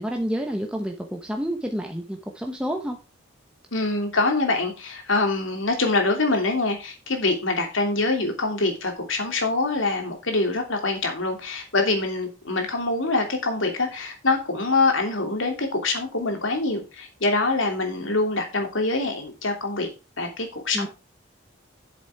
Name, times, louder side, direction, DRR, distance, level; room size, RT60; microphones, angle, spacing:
voice 1, 0.0-3.0 20.7-20.9, equal, 5° right, 0.9 m, -29 dB
voice 2, 3.7-19.9 20.2-20.9, left 3 dB, 75° left, 2.9 m, -24 dB
8.2 x 7.3 x 4.7 m
head